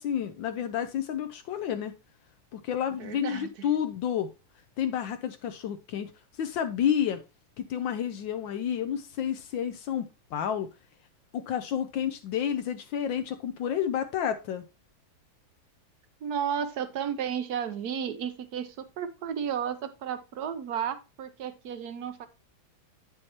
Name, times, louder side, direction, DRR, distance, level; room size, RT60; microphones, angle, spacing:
voice 1, 0.0-1.9 2.5-4.3 4.8-6.1 6.4-7.2 7.6-10.7 11.3-14.6, left 9 dB, 75° left, 1.3 m, -30 dB
voice 2, 3.0-3.7 16.2-22.3, right 8 dB, 65° right, 1.1 m, -33 dB
8.5 x 6.5 x 2.9 m
omnidirectional pair, 2.2 m